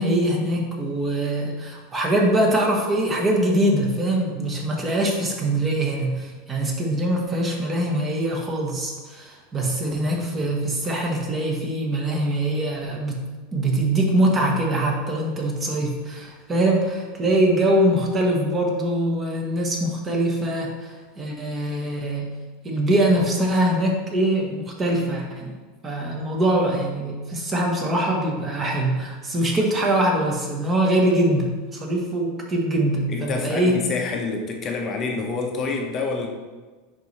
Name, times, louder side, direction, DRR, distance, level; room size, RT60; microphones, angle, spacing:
voice 1, 0.0-13.2 13.5-22.4 22.6-25.5 25.8-33.8, right 1 dB, 20° right, 0 dB, 1.2 m, -23 dB
voice 2, 33.1-36.3, left 3 dB, 25° left, 1 dB, 0.8 m, -27 dB
10.0 x 4.1 x 3.3 m, 1.4 s
supercardioid pair, 155°, 0 cm